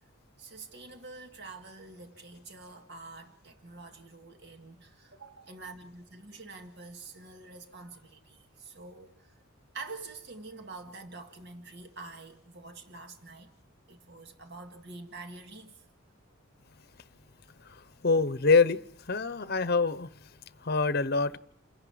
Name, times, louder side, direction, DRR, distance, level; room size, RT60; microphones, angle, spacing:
voice 1, 0.4-9.3 9.7-13.5 13.9-15.7, right 3 dB, 55° right, 2.0 m, -46 dB
voice 2, 18.0-18.8 19.1-20.1 20.6-21.4, left 4 dB, 50° left, 0.9 m, -25 dB
28.5 x 11.0 x 9.5 m
head